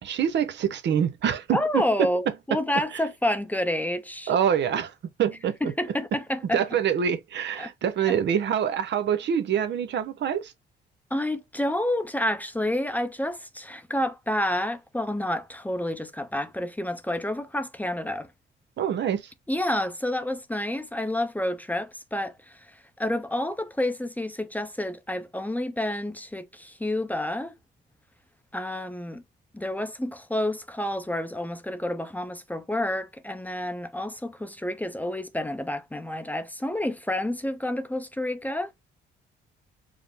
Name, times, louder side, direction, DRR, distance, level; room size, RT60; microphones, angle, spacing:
voice 1, 0.0-2.1 4.3-4.9 5.2-5.7 6.5-10.5 18.8-19.3, right 8 dB, 65° right, 0.7 m, -25 dB
voice 2, 1.5-4.3 5.6-6.6 7.6-7.7 8.1-8.2 11.1-18.3 19.5-22.7 23.0-27.5 28.5-29.2 29.5-38.7, left 1 dB, 10° left, 0.6 m, -29 dB
4.8 x 2.0 x 3.5 m
cardioid pair, 90°, 20 cm